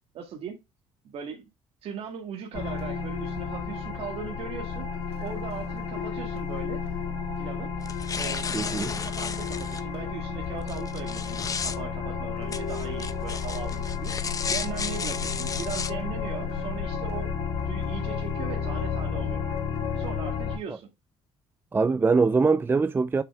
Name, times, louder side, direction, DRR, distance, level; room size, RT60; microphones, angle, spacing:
voice 1, 0.1-0.6 1.0-1.5 1.8-4.9 5.2-6.8 7.4-7.7 8.2-14.1 14.5-17.3 17.6-19.4 20.0-20.9, right 7 dB, 65° right, 1.9 m, -39 dB
sound 1, 2.5-20.6, left 6 dB, 70° left, 3.2 m, -32 dB
sound 2, 7.8-9.8 10.7-11.8 12.5-15.9, left 6 dB, 30° left, 0.9 m, -33 dB
voice 2, 8.5-8.9 21.7-23.2, right 4 dB, 20° right, 0.4 m, -22 dB
7.1 x 5.8 x 3.5 m
cardioid pair, 100°, 11 cm